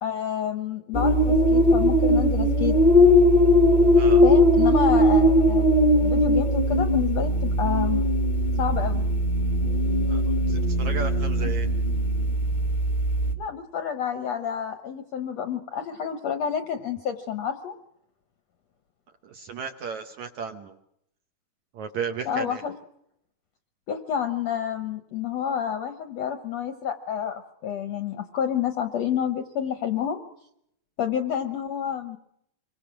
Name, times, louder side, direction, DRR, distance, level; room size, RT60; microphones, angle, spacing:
voice 1, 0.0-2.8 4.2-5.6 6.0-8.0 8.6-9.0 11.4-11.5 13.4-17.7 22.2-22.7 23.9-30.2 31.0-32.2, left 8 dB, 70° left, 8 dB, 1.6 m, -29 dB
sound 1, 0.9-13.3, left 1 dB, 50° left, 0.5 m, -20 dB
voice 2, 10.5-11.7 19.2-20.8 21.7-22.6, right 6 dB, 65° right, 6 dB, 2.0 m, -34 dB
26.5 x 23.5 x 6.1 m, 0.76 s
omnidirectional pair, 4.5 m